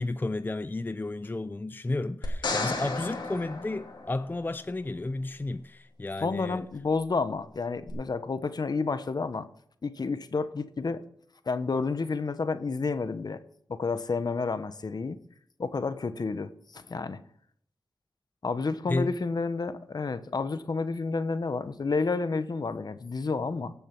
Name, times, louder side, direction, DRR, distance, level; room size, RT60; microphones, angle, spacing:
voice 1, 0.0-6.6 18.9-19.1, left 2 dB, 25° left, 0.5 m, -32 dB
sound 1, 2.2-4.5 7.9-8.0, left 3 dB, 80° left, 2.7 m, -33 dB
voice 2, 6.2-9.5 9.8-11.0 11.5-13.4 13.7-15.2 15.6-17.2 18.4-23.7, left 4 dB, 60° left, 1.1 m, -30 dB
17.0 x 7.1 x 6.0 m
cardioid pair, 50°, 8 cm